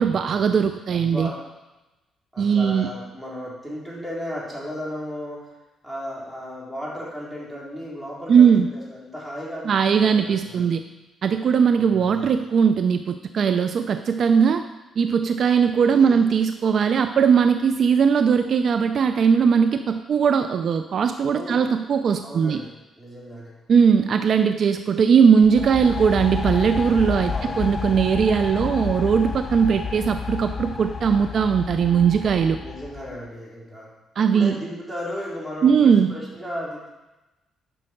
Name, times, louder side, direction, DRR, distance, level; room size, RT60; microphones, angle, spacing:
voice 1, 0.0-1.3 2.4-2.9 8.3-8.7 9.6-10.8 11.2-14.6 15.0-22.6 23.7-32.6 34.2-34.6 35.6-36.1, right 6 dB, 55° right, 9 dB, 0.5 m, -19 dB
voice 2, 0.9-1.4 2.3-5.5 5.8-10.7 11.7-12.3 15.8-16.3 21.3-21.7 22.2-22.7 23.0-23.5 27.1-27.5 32.6-36.9, equal, 5° right, -6 dB, 3.9 m, -35 dB
sound 1, 25.4-33.2, left 5 dB, 40° left, 0.5 m, -30 dB
11.5 x 6.3 x 4.5 m, 1.0 s
cardioid pair, 90°, 0 cm